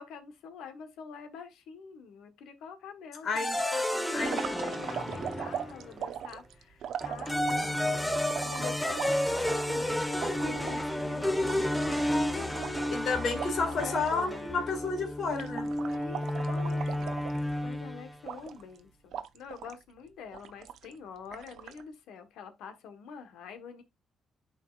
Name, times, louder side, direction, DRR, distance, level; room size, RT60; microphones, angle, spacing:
voice 1, 0.0-8.1 8.4-12.6 13.6-14.6 15.8-23.8, left 6 dB, 85° left, 1.2 m, -46 dB
voice 2, 3.2-3.6 4.1-4.4 12.9-15.7, left 4 dB, 60° left, 2.0 m, -31 dB
sound 1, 3.4-5.9 7.0-18.1, left 1 dB, 5° left, 1.0 m, -31 dB
sound 2, 4.2-7.8 8.3-10.8 11.2-11.3 11.5-14.4 14.7-14.9 15.2-17.7 18.2-18.8 19.1-19.8 20.3-20.9 21.3-21.8, right 9 dB, 75° right, 0.5 m, -40 dB
11.0 x 4.3 x 2.4 m
cardioid pair, 90°, 0 cm